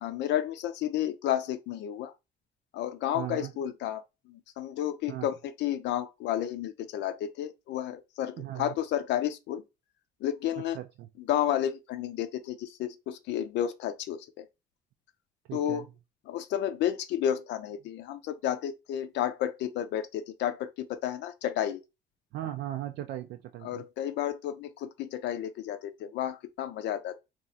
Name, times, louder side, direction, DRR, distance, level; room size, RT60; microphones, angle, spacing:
voice 1, 0.0-2.1 2.7-9.6 10.2-10.8 11.2-14.5 15.5-15.9 16.3-21.8 23.6-27.2, left 11 dB, 80° left, 0.5 m, -31 dB
voice 2, 3.1-3.5 5.1-5.3 8.4-8.8 10.7-11.1 15.5-15.8 22.3-23.8, right 13 dB, 75° right, 0.4 m, -37 dB
2.9 x 2.4 x 4.0 m
cardioid pair, 155°, 18 cm